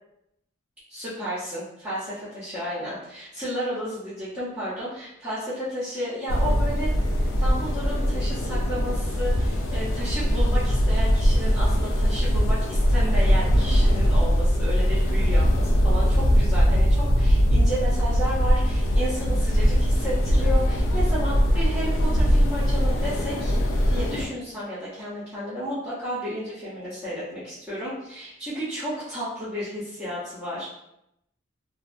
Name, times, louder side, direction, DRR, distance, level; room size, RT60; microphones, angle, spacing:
voice 1, 0.9-6.9 7.4-23.6 23.9-30.7, equal, 10° right, -12 dB, 0.7 m, -32 dB
sound 1, 6.3-24.3, equal, 75° left, 0.4 m, -21 dB
2.6 x 2.0 x 2.5 m, 0.81 s
head